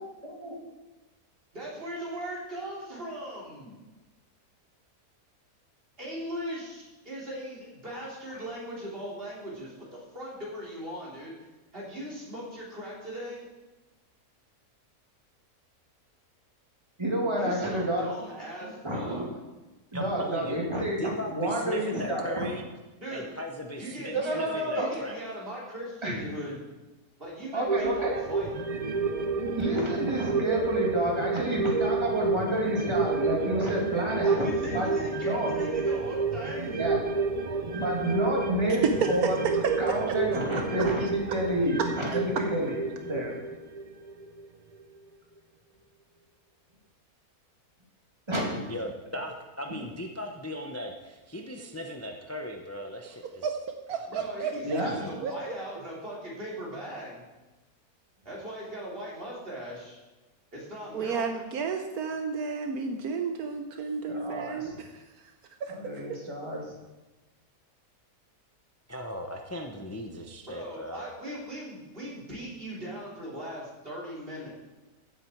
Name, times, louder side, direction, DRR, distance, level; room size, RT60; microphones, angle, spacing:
voice 1, 0.2-0.5 17.0-18.1 18.6-19.2 19.9-22.5 24.1-24.9 26.0-26.3 27.5-28.2 29.3-34.9 35.2-35.5 36.8-37.0 37.7-39.3 39.8-42.8 43.0-43.3 48.3-48.6 54.6-55.0 64.1-64.8 65.7-66.6, right 1 dB, 20° right, -2 dB, 2.6 m, -29 dB
voice 2, 1.5-3.7 6.0-11.3 11.7-13.5 17.4-19.2 23.0-23.2 23.8-26.7 27.2-28.5 34.2-36.9 54.1-57.2 58.2-60.0 60.5-61.3 70.4-74.5, equal, 35° right, -5 dB, 3.8 m, -39 dB
voice 3, 19.9-20.7 21.0-22.6 23.1-25.2 48.7-53.4 54.4-55.1 68.9-71.1, left 1 dB, 15° left, 2 dB, 0.6 m, -38 dB
sound 1, 27.7-44.5 44.8-44.9, right 4 dB, 55° right, 0.4 m, -30 dB
voice 4, 39.0-39.3 39.9-40.0 40.8-41.1 42.1-42.2 53.4-53.5 53.9-54.8 55.2-55.3 60.9-65.0 65.6-66.2, right 5 dB, 75° right, 6 dB, 1.3 m, -32 dB
15.5 x 8.0 x 4.5 m, 1.1 s
omnidirectional pair, 1.6 m